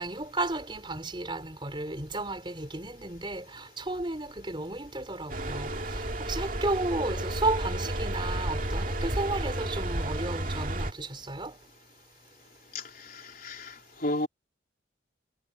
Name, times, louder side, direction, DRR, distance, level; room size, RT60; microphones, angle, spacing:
voice 1, 0.0-11.6, right 2 dB, 25° right, 4.9 m, -33 dB
sound 1, 5.3-10.9, right 1 dB, 45° right, 2.4 m, -32 dB
voice 2, 12.7-13.7 14.0-14.3, left 1 dB, 50° left, 4.0 m, -33 dB
head